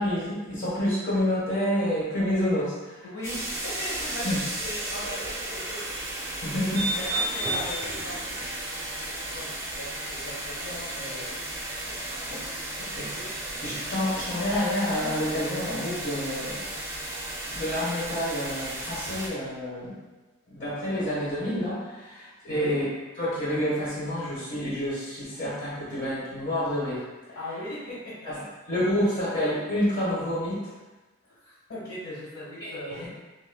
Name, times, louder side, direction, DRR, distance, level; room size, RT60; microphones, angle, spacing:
voice 1, 0.0-3.0 4.2-4.4 6.4-6.8 13.0-13.1 13.6-16.6 17.5-19.9 20.5-22.8 23.2-27.0 28.2-28.3 28.7-30.7 32.6-33.0, left 1 dB, 40° left, -9 dB, 1.4 m, -28 dB
voice 2, 3.0-4.3 4.6-5.8 6.6-6.7 7.0-8.5 9.3-9.5 9.8-11.4 11.8-12.4 12.9-13.0 13.5-13.6 22.5-22.8 27.3-28.0 31.4-33.1, left 1 dB, 55° left, -10 dB, 1.3 m, -38 dB
sound 1, 3.2-19.3, right 1 dB, 15° right, 0.5 m, -33 dB
6.2 x 2.1 x 2.3 m, 1.2 s
head